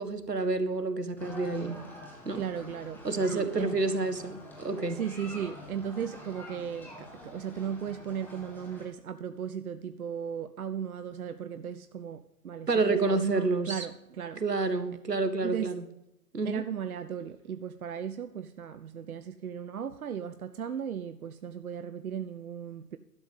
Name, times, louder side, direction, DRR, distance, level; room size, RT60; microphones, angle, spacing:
voice 1, 0.0-1.8 2.2-2.4 3.0-5.0 12.7-13.9 14.4-15.8 16.3-16.6, right 3 dB, 85° right, 10 dB, 1.7 m, -29 dB
sound 1, 1.2-8.9, left 1 dB, 5° left, 1.4 m, -47 dB
voice 2, 2.3-3.0 3.3-3.8 4.9-12.7 13.0-14.4 15.4-15.7 16.4-23.0, right 8 dB, 65° right, 11 dB, 0.8 m, -36 dB
12.0 x 7.2 x 8.0 m, 0.86 s
figure-of-eight pair, 135°, 47 cm